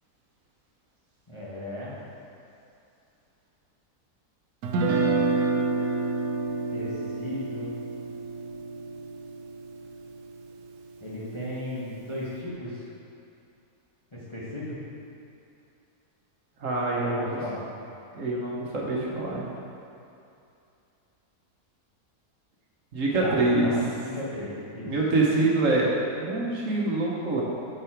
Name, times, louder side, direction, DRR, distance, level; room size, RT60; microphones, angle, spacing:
voice 1, 1.3-1.9 6.7-6.9 7.2-7.7 11.0-12.9 14.1-14.8 17.1-17.7 23.2-24.9, left 1 dB, 20° left, -8 dB, 1.0 m, -35 dB
Guitar, 4.6-10.7, right 3 dB, 80° right, 1.2 m, -29 dB
voice 2, 16.6-17.4 18.1-19.5 22.9-23.7 24.8-27.4, right 2 dB, 60° right, -4 dB, 1.3 m, -25 dB
8.2 x 4.7 x 4.6 m, 2.6 s
omnidirectional pair, 1.6 m